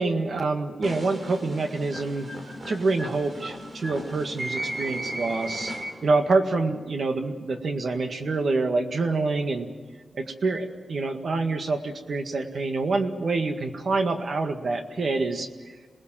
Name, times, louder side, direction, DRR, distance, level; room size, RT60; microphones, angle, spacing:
voice 1, 0.0-2.3 2.7-5.7 6.0-9.7 10.1-15.5, right 3 dB, 60° right, 6 dB, 1.9 m, -26 dB
sound 1, 0.8-6.2, right 1 dB, 40° right, 3.6 m, -35 dB
27.5 x 19.5 x 7.6 m, 1.5 s
wide cardioid pair, 115°, 0 cm